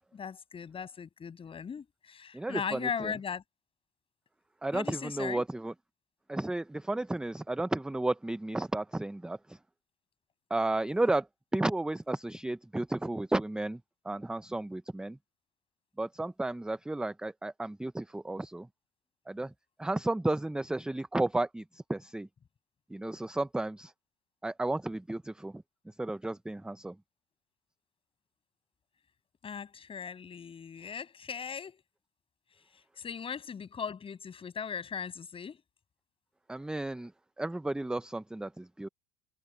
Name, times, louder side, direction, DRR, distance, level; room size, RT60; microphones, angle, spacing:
voice 1, 0.1-3.4 4.7-5.4 29.4-31.8 32.7-35.6, left 6 dB, 30° left, 7.1 m, -38 dB
voice 2, 2.3-3.1 4.6-5.7 6.3-9.6 10.5-11.3 11.5-13.8 14.0-15.2 16.0-18.7 19.3-19.5 19.8-22.3 22.9-23.9 24.4-25.6 26.0-26.9 36.5-37.1 37.4-38.9, right 2 dB, 5° right, 0.6 m, -33 dB
supercardioid pair, 105°, 19 cm